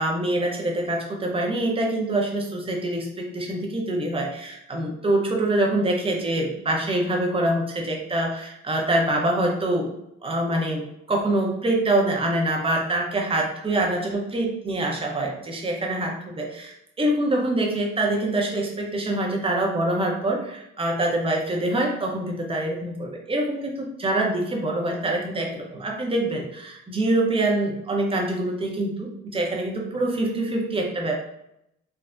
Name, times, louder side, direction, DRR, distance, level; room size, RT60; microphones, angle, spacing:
voice 1, 0.0-9.9 10.2-31.2, right 1 dB, 20° right, 0 dB, 0.7 m, -25 dB
3.4 x 2.0 x 2.5 m, 0.79 s
cardioid pair, 90°, 30 cm